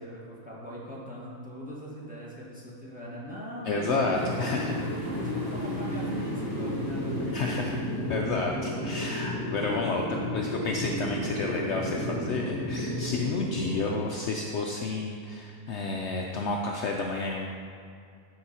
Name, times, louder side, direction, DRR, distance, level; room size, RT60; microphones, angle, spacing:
voice 1, 0.0-7.7 8.4-8.6 9.5-9.9, equal, 5° right, -7 dB, 1.7 m, -41 dB
voice 2, 3.6-4.7 7.3-7.8 8.1-10.0 10.3-17.5, left 3 dB, 60° left, 0 dB, 0.8 m, -31 dB
sound 1, 3.9-13.8, equal, 65° right, 2.5 m, -32 dB
sound 2, 4.1-8.9, left 1 dB, 45° left, 2.1 m, -48 dB
12.5 x 4.7 x 4.3 m, 2.4 s
omnidirectional pair, 1.5 m